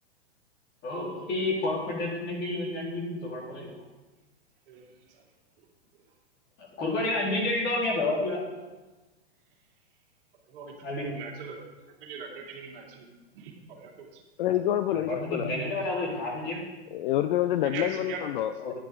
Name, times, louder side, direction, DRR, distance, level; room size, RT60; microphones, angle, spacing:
voice 1, 0.8-3.7 6.6-8.4 10.8-11.2 14.9-16.7 18.6-18.8, left 2 dB, 30° left, -3 dB, 3.7 m, -30 dB
voice 2, 4.7-5.2 10.5-14.2 17.6-18.2, right 5 dB, 50° right, 0 dB, 2.5 m, -41 dB
voice 3, 14.4-15.5 16.9-18.8, left 12 dB, 50° left, 11 dB, 0.5 m, -27 dB
10.5 x 9.5 x 3.6 m, 1.2 s
hypercardioid pair, 110°, 34 cm